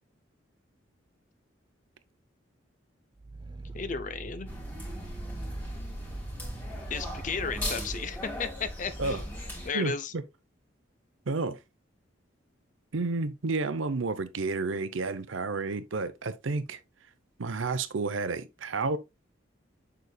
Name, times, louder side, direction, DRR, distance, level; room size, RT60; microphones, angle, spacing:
Growling, 3.2-8.1, right 3 dB, 25° right, 0.5 m, -43 dB
voice 1, 3.7-4.5 6.9-9.2 9.6-10.1, left 5 dB, 40° left, 0.5 m, -34 dB
sound 1, 4.5-9.7, left 1 dB, 10° left, 2.0 m, -38 dB
voice 2, 9.7-10.2 11.3-11.6 12.9-16.8 17.4-19.0, right 3 dB, 85° right, 0.7 m, -31 dB
6.8 x 6.3 x 2.2 m
head